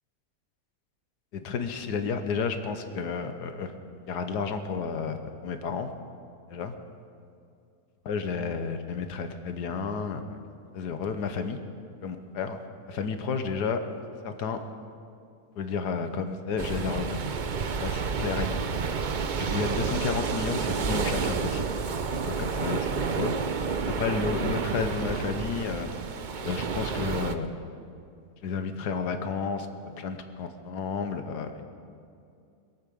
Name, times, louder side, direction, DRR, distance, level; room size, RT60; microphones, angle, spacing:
voice 1, 1.3-3.7 4.1-5.9 6.5-6.7 8.0-10.4 10.7-11.6 12.0-12.6 12.9-13.8 14.2-14.6 15.6-17.2 17.8-18.6 19.5-21.7 22.2-23.3 23.9-25.9 26.4-27.6 28.4-31.5, left 5 dB, 85° left, 8 dB, 1.5 m, -31 dB
sound 1, 16.6-27.4, right 5 dB, 55° right, 0.5 m, -30 dB
22.0 x 8.7 x 7.0 m, 2.5 s
omnidirectional pair, 1.7 m